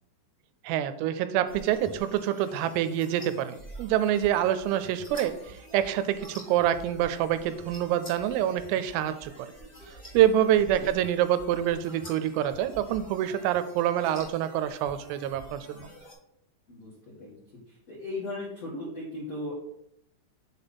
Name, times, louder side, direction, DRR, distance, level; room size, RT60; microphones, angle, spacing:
voice 1, 0.6-9.5 10.1-15.9, right 11 dB, 85° right, 12 dB, 3.3 m, -26 dB
sound 1, 1.4-16.1, right 1 dB, 20° left, 1.5 m, -48 dB
voice 2, 16.7-17.3 17.7-19.5, left 2 dB, 70° left, -6 dB, 1.5 m, -37 dB
7.2 x 4.1 x 5.3 m, 0.76 s
omnidirectional pair, 5.9 m